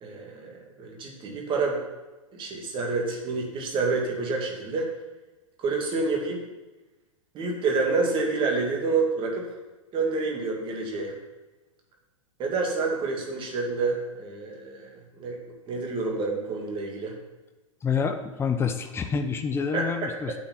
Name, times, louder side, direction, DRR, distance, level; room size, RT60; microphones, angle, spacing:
voice 1, 0.0-1.8 2.3-4.9 5.6-6.4 7.3-9.5 9.9-11.1 12.4-15.4 15.7-17.2 19.7-19.8, right 3 dB, 30° right, 0 dB, 2.4 m, -28 dB
voice 2, 17.8-20.3, left 6 dB, 15° left, 6 dB, 0.8 m, -27 dB
8.2 x 6.3 x 7.3 m, 1.1 s
figure-of-eight pair, 100°, 17 cm